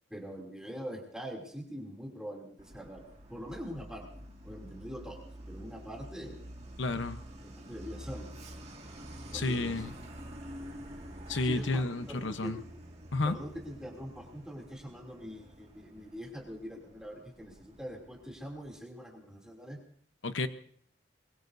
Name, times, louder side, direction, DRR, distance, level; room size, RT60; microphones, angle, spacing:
voice 1, 0.1-3.0 3.3-4.1 4.4-5.2 5.5-6.4 6.9-7.0 7.4-8.3 9.2-9.8 11.4-12.5 13.2-19.8, equal, 5° right, -1 dB, 2.9 m, -43 dB
Truck, 2.6-18.8, equal, 35° right, 2.1 m, -48 dB
voice 2, 6.8-7.2 9.3-9.9 11.3-12.6 13.1-13.4 20.2-20.5, left 2 dB, 85° left, 9 dB, 1.0 m, -31 dB
23.0 x 22.0 x 2.7 m, 0.62 s
head